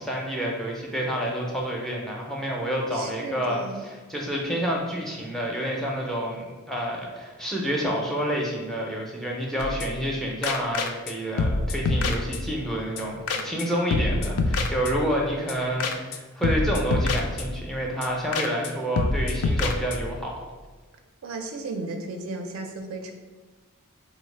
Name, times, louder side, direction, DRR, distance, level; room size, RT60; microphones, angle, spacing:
voice 1, 0.0-20.4, equal, ahead, -2 dB, 0.4 m, -29 dB
voice 2, 2.9-3.9 13.3-14.4 21.2-23.1, right 3 dB, 70° right, 4 dB, 0.4 m, -36 dB
sound 1, 9.6-10.1 10.4-11.1 11.4-12.7 13.0-13.1 13.3-13.7 13.9-15.2 15.5-15.6 15.8-16.2 16.4-17.7 18.0-18.1 18.3-18.7 19.0-20.2, left 3 dB, 75° left, 0.3 m, -26 dB
3.2 x 2.1 x 3.2 m, 1.4 s
head